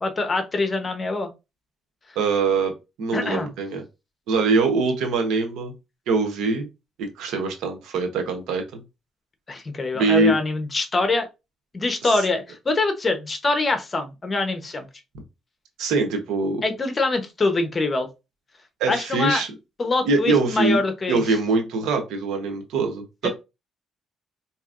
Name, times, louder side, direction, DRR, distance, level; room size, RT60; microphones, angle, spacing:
voice 1, 0.0-1.3 3.1-3.5 9.5-11.3 11.7-14.9 16.6-18.1 18.9-19.4 19.8-21.2, left 3 dB, 30° left, 0.9 m, -24 dB
voice 2, 2.1-2.7 3.0-3.8 4.3-5.7 6.1-6.7 7.0-8.8 9.9-10.3 12.0-12.1 15.8-16.6 18.8-19.5 20.0-20.8 21.1-23.3, right 3 dB, 90° right, 1.0 m, -23 dB
4.3 x 2.9 x 2.5 m
cardioid pair, 90°, 0 cm